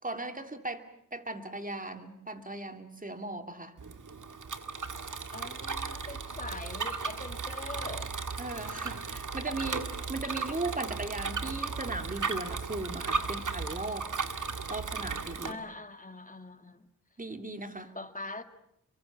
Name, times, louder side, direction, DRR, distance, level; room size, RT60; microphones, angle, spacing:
voice 1, 0.0-3.8 8.4-14.1 14.7-15.6 17.2-18.0, right 2 dB, 25° right, 2.7 m, -38 dB
Bicycle, 3.8-15.5, right 5 dB, 70° right, 2.0 m, -36 dB
voice 2, 5.3-8.2 15.4-16.9 17.9-18.4, left 2 dB, 25° left, 2.2 m, -43 dB
29.0 x 24.0 x 7.1 m
cardioid pair, 60°, 32 cm